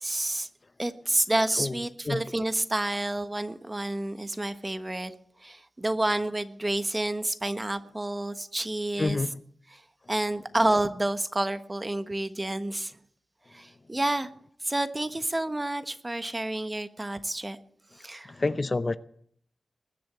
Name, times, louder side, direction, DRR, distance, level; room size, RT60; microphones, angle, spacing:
voice 1, 0.0-0.5 0.8-5.1 5.4-9.2 9.7-9.8 10.1-13.0 13.5-14.3 14.6-17.6 17.9-18.3, right 1 dB, 20° right, 1.2 m, -29 dB
voice 2, 9.0-9.4 18.3-19.0, left 3 dB, 40° left, 0.6 m, -28 dB
21.0 x 7.8 x 8.0 m
cardioid pair, 70°, 0 cm